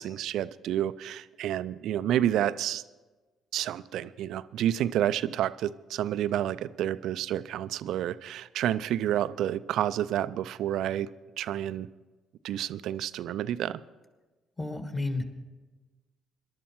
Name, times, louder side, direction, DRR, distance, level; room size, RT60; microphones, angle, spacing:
voice 1, 0.0-2.8 3.5-11.1 11.4-11.9 12.4-13.8, right 11 dB, 65° right, 15 dB, 0.4 m, -29 dB
voice 2, 14.6-15.2, left 2 dB, 25° left, 4 dB, 2.4 m, -31 dB
26.0 x 12.0 x 3.1 m, 1.2 s
hypercardioid pair, 45°, 0 cm